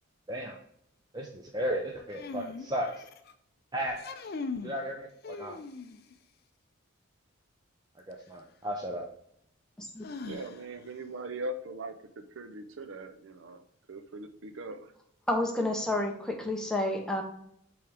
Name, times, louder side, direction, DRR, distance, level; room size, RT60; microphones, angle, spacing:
voice 1, 1.1-3.1 3.7-4.1 4.6-5.6 8.1-9.1, equal, 20° right, 0 dB, 0.5 m, -34 dB
sound 1, 2.1-3.3 3.9-4.8 5.2-6.1 8.1-8.2 10.0-10.9, left 4 dB, 45° left, 0.5 m, -40 dB
voice 2, 10.2-14.9, right 2 dB, 70° right, 8 dB, 0.6 m, -41 dB
voice 3, 15.3-17.2, left 1 dB, 5° left, 1 dB, 0.9 m, -30 dB
7.7 x 3.5 x 3.4 m, 0.70 s
head